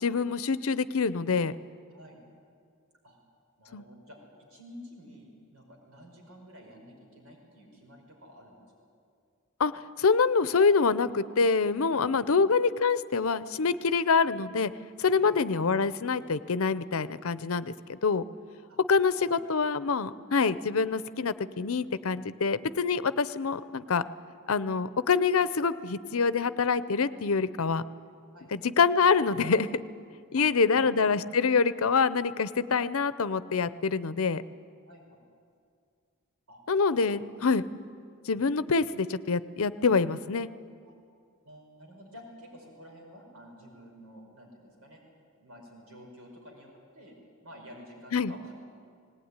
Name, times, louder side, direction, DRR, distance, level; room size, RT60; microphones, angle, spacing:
voice 1, 0.0-1.5 3.7-3.8 9.6-14.7 15.0-17.7 18.0-18.2 18.9-24.1 24.5-27.8 28.5-29.8 30.3-34.4 36.7-37.7 38.3-40.5 48.1-48.3, left 5 dB, 70° left, 15 dB, 0.7 m, -26 dB
voice 2, 3.6-4.2 4.5-8.6 11.9-12.6 15.2-15.4 18.7-18.8 19.1-19.3 28.3-28.5 30.4-30.5 30.7-31.1 34.9-35.2 36.5-36.6 37.0-37.3 40.8-40.9 41.4-45.0 45.4-47.1 47.4-48.5, equal, 80° right, 0 dB, 5.3 m, -50 dB
18.5 x 18.5 x 9.7 m, 2.2 s
head